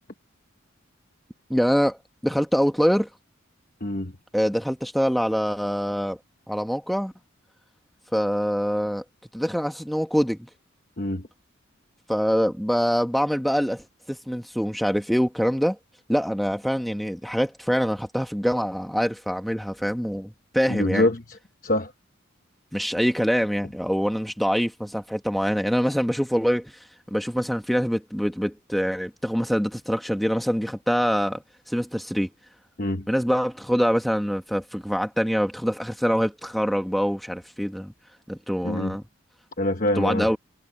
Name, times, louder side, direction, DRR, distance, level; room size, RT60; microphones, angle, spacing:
voice 1, 1.5-2.0 2.2-3.1 4.3-6.2 6.5-7.1 8.1-9.0 9.3-10.5 12.1-15.8 16.1-21.1 22.7-32.3 33.1-37.9 38.3-39.0 40.0-40.4, equal, ahead, 1.1 m, -24 dB
voice 2, 3.8-4.1 11.0-11.3 20.7-21.4 21.6-21.9 32.8-33.1 38.6-39.0 39.6-40.3, left 1 dB, 45° left, 1.1 m, -25 dB
head